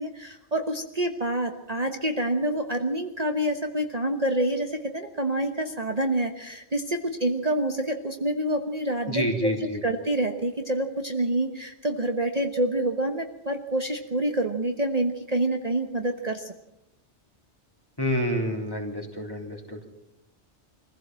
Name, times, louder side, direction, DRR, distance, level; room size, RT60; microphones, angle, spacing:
voice 1, 0.0-16.5, right 1 dB, 35° right, 4 dB, 1.3 m, -27 dB
voice 2, 9.1-9.8 18.0-19.8, equal, 20° left, 1 dB, 3.6 m, -28 dB
23.5 x 16.0 x 7.7 m, 0.93 s
omnidirectional pair, 1.2 m